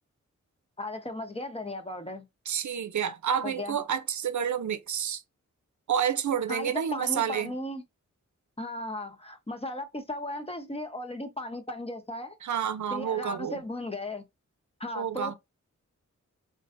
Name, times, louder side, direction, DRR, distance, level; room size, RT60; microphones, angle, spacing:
voice 1, 0.8-2.2 3.4-3.8 6.5-7.8 8.6-12.4 12.9-14.2 14.8-15.3, left 1 dB, 20° left, 1.0 m, -36 dB
voice 2, 2.5-5.2 5.9-7.5 12.4-13.6 15.0-15.3, right 8 dB, 70° right, 0.6 m, -29 dB
3.8 x 3.1 x 2.5 m
cardioid pair, 60°, 30 cm